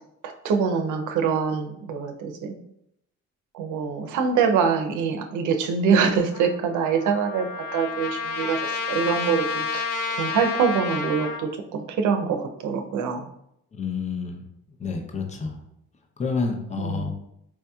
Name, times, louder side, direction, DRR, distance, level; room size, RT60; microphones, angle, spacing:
voice 1, 0.2-2.6 3.5-13.3 16.8-17.1, right 6 dB, 80° right, 5 dB, 0.6 m, -24 dB
Trumpet, 6.3-11.5, left 5 dB, 90° left, 0.5 m, -30 dB
voice 2, 13.7-14.4 14.8-15.6 16.2-17.1, left 4 dB, 25° left, 3 dB, 0.6 m, -29 dB
4.5 x 2.7 x 2.3 m, 0.76 s
cardioid pair, 90°, 30 cm